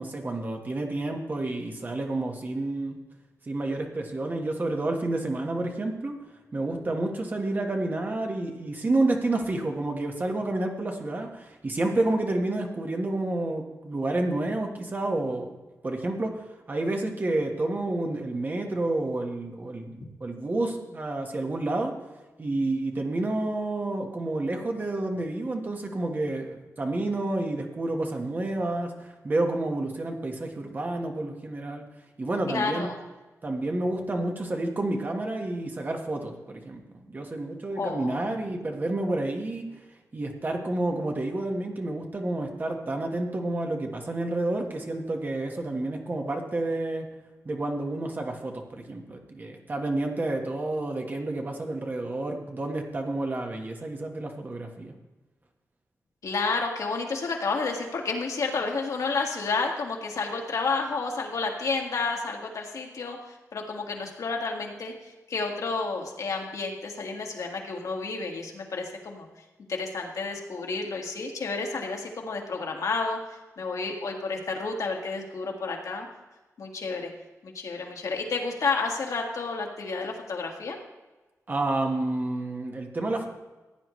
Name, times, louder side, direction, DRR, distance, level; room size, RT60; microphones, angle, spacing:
voice 1, 0.0-3.0 3.5-6.1 6.5-15.6 15.8-21.9 22.4-31.8 32.2-32.9 33.4-36.8 37.1-39.7 40.1-47.1 47.4-54.9 81.5-83.3, right 2 dB, 30° right, 3 dB, 1.5 m, -29 dB
voice 2, 32.5-33.0 37.8-38.4 56.2-69.3 69.7-73.2 73.6-76.1 76.6-77.1 77.4-80.8, left 4 dB, 70° left, 1 dB, 1.9 m, -31 dB
16.0 x 9.6 x 3.2 m, 1.2 s
wide cardioid pair, 145°, 6 cm